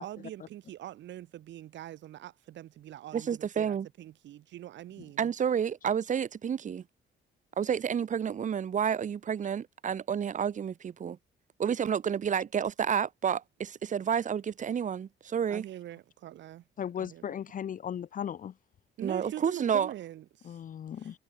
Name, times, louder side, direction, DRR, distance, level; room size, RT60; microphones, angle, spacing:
voice 1, 0.0-5.3 15.5-16.6 17.0-17.4 19.0-20.6 21.0-21.2, right 13 dB, 70° right, 1.8 m, -43 dB
voice 2, 3.1-3.9 5.2-6.8 7.6-11.2 11.6-15.6 19.0-19.9, right 8 dB, 40° right, 1.5 m, -30 dB
voice 3, 16.8-18.5 20.5-21.2, left 9 dB, 45° left, 1.1 m, -36 dB
cardioid pair, 135°, 20 cm